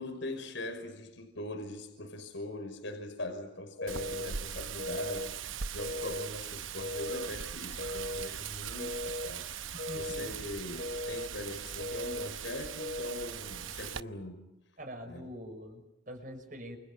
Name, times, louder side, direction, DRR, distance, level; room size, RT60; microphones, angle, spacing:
voice 1, 0.0-14.5 15.1-15.3, left 1 dB, 75° left, 5.6 m, -41 dB
sound 1, 3.8-4.3 4.8-5.3 5.8-6.3 6.8-7.3 7.8-8.3 8.8-9.3 9.8-10.3 10.8-11.3 11.8-12.3 12.8-13.3, left 1 dB, 50° left, 1.1 m, -37 dB
Wind, 3.9-14.0, right 8 dB, 90° right, 0.9 m, -40 dB
voice 2, 9.7-10.3 14.8-16.8, equal, 45° right, 6.2 m, -44 dB
29.0 x 29.0 x 5.9 m
head